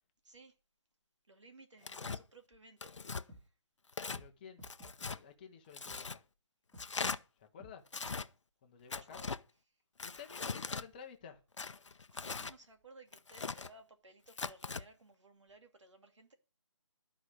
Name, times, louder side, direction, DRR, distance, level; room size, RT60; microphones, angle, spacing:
voice 1, 0.2-0.6 1.3-3.5 9.0-9.3 9.7-9.8 12.1-16.3, right 2 dB, 70° right, 2.5 m, -59 dB
Tearing, 1.8-2.2 2.8-3.2 3.9-4.2 4.6-5.2 5.7-6.2 6.8-7.2 7.9-8.3 8.9-9.4 10.0-10.9 11.6-12.6 13.1-13.7 14.3-14.8, left 4 dB, 75° left, 0.7 m, -40 dB
sound 1, 2.5-2.6 3.3-3.4 4.2-4.3 4.6-5.1 5.9-6.0 6.7-6.9 7.6-7.7 8.0-8.2, equal, ahead, 2.0 m, -53 dB
voice 2, 4.1-4.6 5.0-6.2 7.3-7.9 8.6-9.2 10.0-11.4, left 7 dB, 20° left, 0.9 m, -53 dB
12.5 x 5.0 x 6.3 m
figure-of-eight pair, 160°, 16 cm